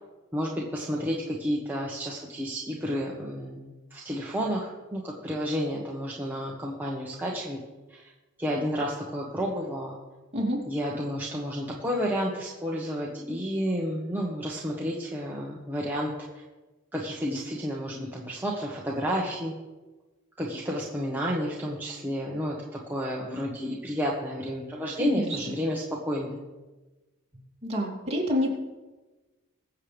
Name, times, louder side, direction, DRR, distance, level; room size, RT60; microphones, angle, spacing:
voice 1, 0.3-7.6 7.9-8.1 8.4-10.0 10.7-16.1 16.9-19.5 20.4-26.4, equal, 10° right, -4 dB, 1.2 m, -31 dB
voice 2, 25.0-25.4 27.6-28.5, equal, 30° right, -3 dB, 2.8 m, -27 dB
22.0 x 7.5 x 3.4 m, 1.2 s
head